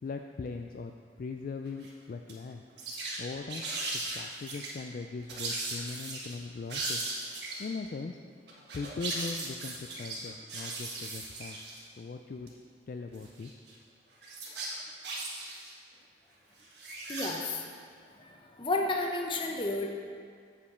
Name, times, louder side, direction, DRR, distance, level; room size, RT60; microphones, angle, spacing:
voice 1, 0.0-2.6 3.2-7.0 7.6-8.2 8.7-11.7 12.0-12.5 12.9-13.6, left 4 dB, 50° left, 5 dB, 0.3 m, -40 dB
sound 1, 1.7-1.9 2.3-2.4 2.7-3.2 3.5-4.7 5.3-6.3 6.7-7.7 8.5-11.8 12.5-12.6 13.1-13.7 14.2-15.7 16.6-17.3, right 2 dB, 70° right, 1.4 m, -37 dB
voice 2, 17.1-17.6 18.1-19.9, left 2 dB, 30° left, 2 dB, 0.8 m, -32 dB
8.5 x 5.0 x 5.9 m, 2.1 s
head